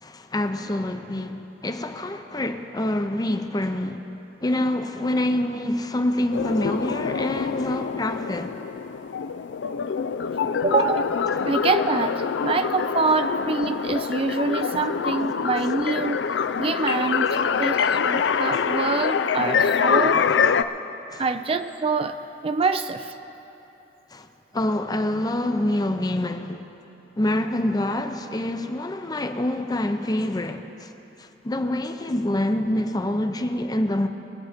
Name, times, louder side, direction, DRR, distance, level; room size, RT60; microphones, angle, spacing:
voice 1, 0.0-4.1 4.4-8.5 18.5-18.6 21.1-21.2 24.1-24.3 24.5-26.7 27.2-30.9 31.2-34.1, left 1 dB, 20° left, 0.6 m, -26 dB
sound 1, 6.3-20.6, left 6 dB, 80° left, 0.4 m, -25 dB
voice 2, 10.6-11.2 11.5-16.2 16.6-20.4 21.2-23.1, right 4 dB, 30° right, 0.4 m, -25 dB
22.5 x 8.6 x 5.1 m
head